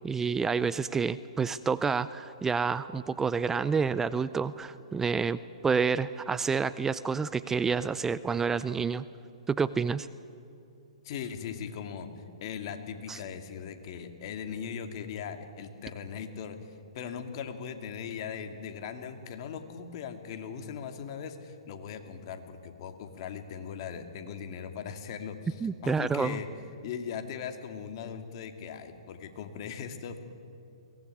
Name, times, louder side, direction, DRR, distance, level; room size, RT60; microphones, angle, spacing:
voice 1, 0.0-9.1 9.5-10.1 13.1-13.2 25.6-26.4, right 5 dB, 10° right, 15 dB, 0.5 m, -29 dB
voice 2, 11.0-26.5 26.8-30.2, left 7 dB, 50° left, 7 dB, 2.4 m, -39 dB
23.0 x 18.0 x 9.9 m, 2.6 s
hypercardioid pair, 135°, 3 cm